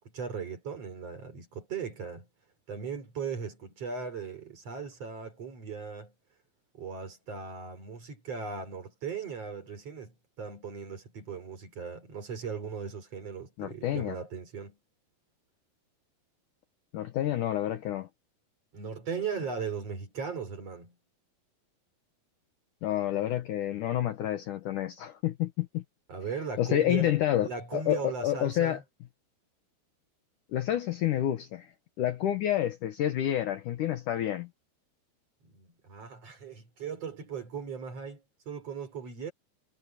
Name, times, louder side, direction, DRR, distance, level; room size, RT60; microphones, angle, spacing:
voice 1, 0.0-2.3 2.7-6.1 6.7-14.8 18.7-20.9 26.1-28.8 35.4-39.3, right 6 dB, 40° right, 4.7 m, -38 dB
voice 2, 13.6-14.2 16.9-18.1 22.8-25.8 26.6-28.8 30.5-31.7 32.0-34.5, left 12 dB, 65° left, 2.2 m, -29 dB
omnidirectional pair, 4.6 m